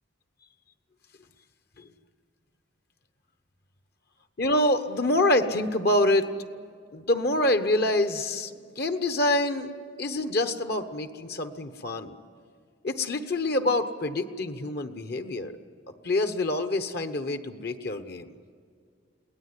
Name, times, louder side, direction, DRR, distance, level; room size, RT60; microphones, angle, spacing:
voice 1, 4.4-6.3 6.9-12.2 12.8-15.6 16.0-18.3, left 1 dB, 55° left, 9 dB, 1.1 m, -26 dB
23.0 x 18.0 x 9.7 m, 2.2 s
head